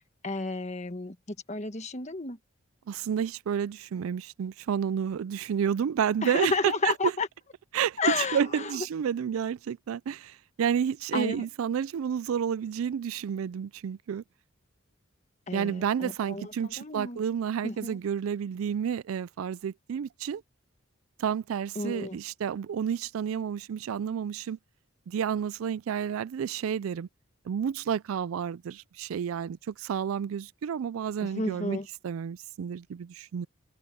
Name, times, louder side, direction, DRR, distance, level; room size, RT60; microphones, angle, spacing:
voice 1, 0.2-1.2 1.5-2.4 6.2-7.3 8.0-8.7 11.1-11.4 15.5-17.2 17.6-18.0 21.7-22.2 31.2-31.9, left 3 dB, 35° left, 1.4 m, -31 dB
voice 2, 2.9-7.1 7.7-14.2 15.5-20.4 21.2-24.6 25.1-27.1 27.5-31.8 32.0-33.5, right 8 dB, 85° right, 0.4 m, -30 dB
head